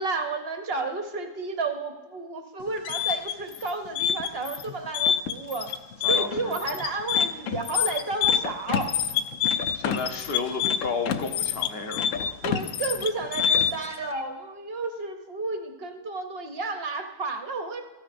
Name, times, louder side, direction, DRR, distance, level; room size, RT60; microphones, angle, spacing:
voice 1, 0.0-5.7 6.1-8.9 12.4-17.8, right 3 dB, 55° right, 6 dB, 0.7 m, -32 dB
sound 1, 2.6-13.9, left 8 dB, 75° left, 0.7 m, -26 dB
voice 2, 6.0-6.6 9.7-12.4, left 4 dB, 45° left, 5 dB, 0.8 m, -32 dB
14.0 x 9.4 x 2.5 m, 1.3 s
omnidirectional pair, 1.8 m